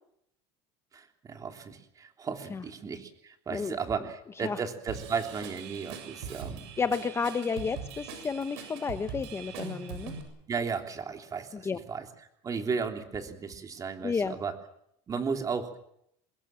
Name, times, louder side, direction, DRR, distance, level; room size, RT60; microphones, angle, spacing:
voice 1, 0.9-6.6 10.5-12.1 12.4-14.5 15.1-15.8, right 5 dB, 25° right, 5 dB, 3.2 m, -34 dB
Drum kit / Drum, 4.9-10.2, right 6 dB, 90° right, 7.3 m, -42 dB
voice 2, 6.8-10.1 11.5-11.8 14.0-14.3, left 5 dB, 20° left, 10 dB, 1.0 m, -31 dB
24.0 x 21.0 x 7.5 m, 0.74 s
cardioid pair, 140°, 14 cm